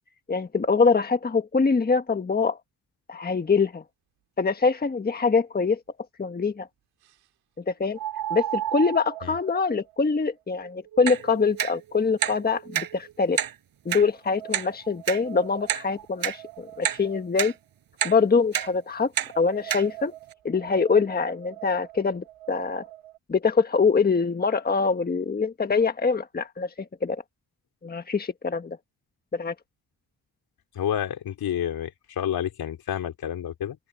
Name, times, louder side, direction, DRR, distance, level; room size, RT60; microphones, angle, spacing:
voice 1, 0.3-2.6 3.1-3.8 4.4-5.8 6.2-6.7 7.7-8.0 8.3-13.4 13.8-17.5 18.0-20.1 20.4-22.8 23.3-27.2 27.8-28.8 29.3-29.5, left 4 dB, 25° left, 1.4 m, -24 dB
sound 1, 5.4-5.5 8.0-13.1 13.9-17.6 18.6-23.2, right 12 dB, 85° right, 2.3 m, -39 dB
sound 2, 11.1-11.2 11.6-11.7 12.2-12.4 12.7-12.9 13.4-13.5 13.9-14.0 14.5-14.7 15.1-15.2 15.7-15.8 16.2-16.4 16.8-17.0 17.4-17.5 18.0-18.2 18.5-18.7 19.2-19.3 19.7-19.8 20.3-20.4, right 10 dB, 65° right, 4.7 m, -27 dB
voice 2, 30.7-33.8, left 10 dB, 75° left, 3.7 m, -29 dB
open air
cardioid pair, 85°, 37 cm